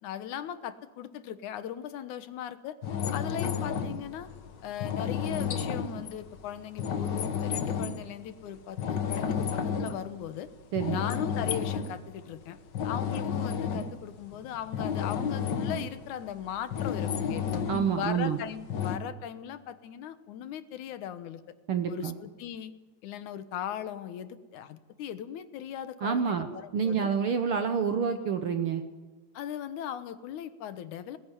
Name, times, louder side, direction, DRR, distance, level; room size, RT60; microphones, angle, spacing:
voice 1, 0.0-2.8 3.1-4.3 4.6-10.5 10.9-12.6 12.8-17.6 18.0-21.4 21.9-22.7 23.0-27.1 29.3-31.2, left 10 dB, 75° left, 12 dB, 2.4 m, -38 dB
sound 1, 2.8-8.1 8.5-10.5 10.8-12.0 12.4-16.0 16.5-18.0 18.7-19.0, left 7 dB, 55° left, 1.3 m, -31 dB
voice 2, 10.7-11.0 17.7-18.4 21.7-22.1 26.0-28.8, right 7 dB, 60° right, 8 dB, 1.5 m, -28 dB
21.5 x 19.5 x 9.9 m, 1.3 s
omnidirectional pair, 3.6 m